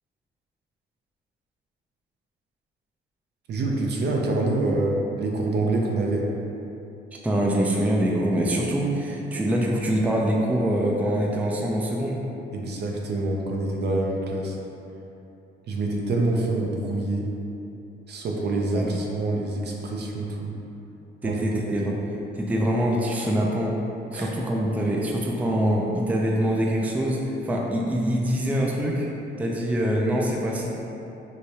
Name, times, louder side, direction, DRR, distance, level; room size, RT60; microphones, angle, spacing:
voice 1, 3.5-6.3 12.5-14.6 15.7-17.3 18.1-20.6 21.2-21.4 21.7-22.0 24.1-24.3, right 2 dB, 55° right, 0 dB, 0.5 m, -26 dB
voice 2, 7.2-12.2 18.7-19.0 21.2-22.0 22.4-23.8 24.1-29.1 29.4-30.7, equal, 5° right, -2 dB, 0.4 m, -24 dB
4.7 x 2.2 x 2.8 m, 2.8 s
cardioid pair, 90°, 20 cm